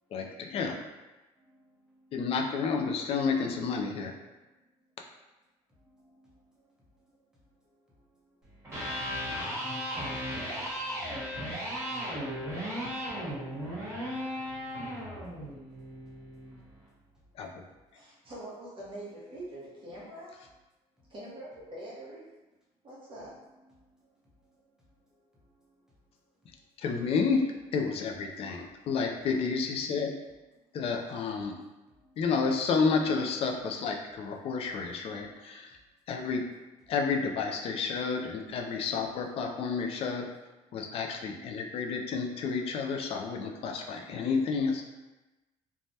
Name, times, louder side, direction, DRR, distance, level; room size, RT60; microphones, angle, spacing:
voice 1, 0.1-0.8 2.1-4.1 17.4-17.5 26.8-30.2 30.7-31.6 32.2-35.8 36.1-36.5 36.9-40.3 40.7-44.8, left 5 dB, 50° left, 2 dB, 0.4 m, -30 dB
voice 2, 1.4-2.2 5.7-8.6 10.1-11.4 13.2-13.4 14.4-15.5 16.1-16.2 16.6-17.2 23.8-24.5 30.7-30.8 31.9-32.2 40.6-41.1, equal, 5° right, -7 dB, 0.9 m, -66 dB
Electric guitar, 8.5-16.6, equal, 20° right, 1.4 m, -36 dB
voice 3, 17.9-20.4 21.1-22.3 22.8-23.3, right 1 dB, 40° right, -7 dB, 1.1 m, -44 dB
3.2 x 2.1 x 2.7 m, 1.1 s
cardioid pair, 125°, 13 cm